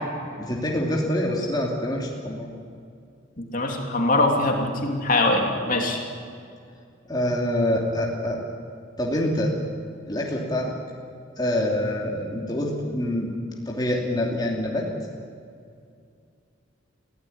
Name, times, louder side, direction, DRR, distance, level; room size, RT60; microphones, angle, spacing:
voice 1, 0.4-2.5 7.1-8.4 9.0-9.5 10.1-10.7 11.4-13.3 13.7-14.9, left 1 dB, 20° left, -2 dB, 2.7 m, -25 dB
voice 2, 3.4-6.0, left 2 dB, 45° left, 1 dB, 3.0 m, -22 dB
23.5 x 16.5 x 9.6 m, 2.3 s
head